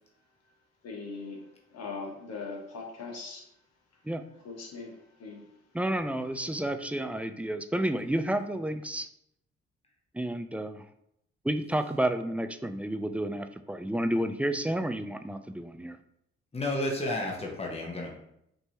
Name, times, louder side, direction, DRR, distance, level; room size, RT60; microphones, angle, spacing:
voice 1, 0.8-3.5 4.4-5.5, left 4 dB, 60° left, 0 dB, 1.4 m, -40 dB
voice 2, 5.7-9.1 10.1-10.8 11.4-16.0, right 1 dB, 5° right, 9 dB, 0.4 m, -30 dB
voice 3, 16.5-18.1, left 1 dB, 20° left, 0 dB, 1.1 m, -32 dB
5.3 x 2.9 x 2.9 m, 0.77 s
hypercardioid pair, 50°, 30 cm